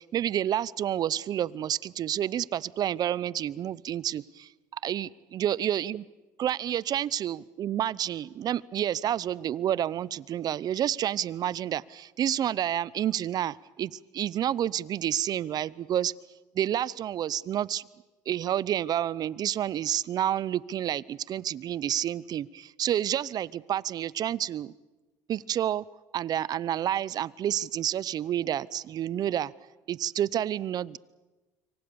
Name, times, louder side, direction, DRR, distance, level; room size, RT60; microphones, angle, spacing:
voice 1, 0.0-6.0 6.4-16.1 16.5-17.9 18.3-24.7 25.3-25.8 26.1-29.5 29.9-31.0, right 11 dB, 55° right, 22 dB, 0.8 m, -29 dB
26.5 x 24.0 x 7.0 m, 1.2 s
supercardioid pair, 75°, 8 cm